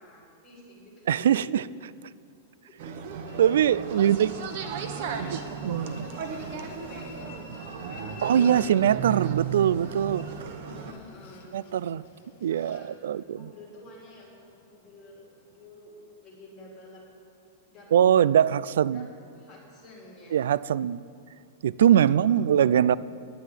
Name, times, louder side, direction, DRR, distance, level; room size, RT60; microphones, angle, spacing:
voice 1, 0.0-1.3 3.6-5.4 6.1-8.4 10.6-11.6 12.5-12.9 13.3-15.9 16.2-17.0 17.7-17.9 18.9-19.1 19.3-20.4 22.0-22.5, left 2 dB, 5° left, -8 dB, 3.1 m, -50 dB
voice 2, 1.1-1.6 3.4-4.3 5.2-6.1 8.2-10.3 11.5-12.0 12.4-13.5 17.9-19.1 20.3-21.0 21.6-23.0, right 9 dB, 75° right, 20 dB, 0.3 m, -22 dB
sound 1, 2.8-10.9, right 7 dB, 45° right, 0.9 m, -35 dB
Train, 3.2-15.7, left 5 dB, 50° left, 1.6 m, -51 dB
9.7 x 9.0 x 9.5 m, 2.4 s
supercardioid pair, 180°, 0 cm